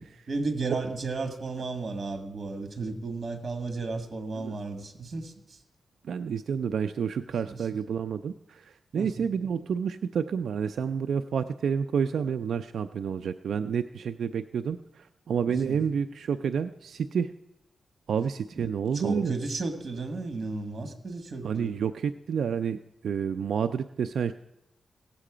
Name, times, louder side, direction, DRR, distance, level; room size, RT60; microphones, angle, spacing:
voice 1, 0.3-5.6 7.5-7.7 8.9-9.1 15.5-15.8 18.6-21.8, right 3 dB, 45° right, 6 dB, 1.7 m, -34 dB
voice 2, 6.0-17.3 18.1-19.3 21.4-24.3, right 7 dB, 85° right, 9 dB, 0.4 m, -29 dB
17.0 x 7.5 x 4.9 m, 0.84 s
wide cardioid pair, 105°, 0 cm